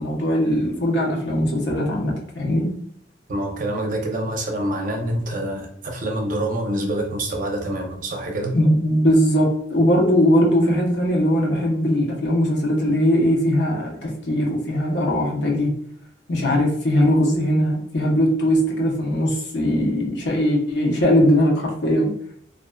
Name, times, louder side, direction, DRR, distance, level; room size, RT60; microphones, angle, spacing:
voice 1, 0.0-2.7 8.5-15.7 16.3-22.1, equal, 70° left, -1 dB, 0.7 m, -20 dB
voice 2, 3.3-8.5, right 1 dB, 45° right, 1 dB, 0.5 m, -26 dB
2.4 x 2.2 x 2.2 m, 0.65 s
head